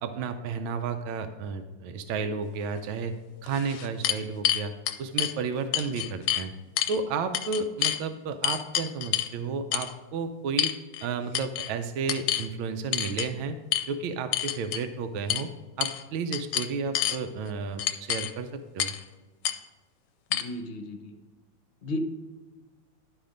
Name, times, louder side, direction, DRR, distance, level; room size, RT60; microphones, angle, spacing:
voice 1, 0.0-4.7 5.0-6.5 6.9-10.7 11.0-13.6 13.9-15.5 15.8-18.9, right 5 dB, 85° right, 8 dB, 1.4 m, -32 dB
sound 1, 2.8-2.9 3.5-5.3 5.7-6.5 6.8-7.0 7.3-8.0 8.4-9.3 9.7-9.9 10.6-11.1 11.3-11.7 12.1-12.5 12.9-13.3 13.7-13.9 14.3-14.8 15.3-15.5 15.8-16.0 16.3-17.2 17.8-18.3 18.8-19.0 19.4-19.6 20.3-20.4, left 11 dB, 75° left, 1.2 m, -28 dB
voice 2, 20.3-21.1 21.8-22.1, left 1 dB, 50° left, 6 dB, 0.9 m, -33 dB
11.0 x 4.9 x 5.1 m, 1.3 s
omnidirectional pair, 2.1 m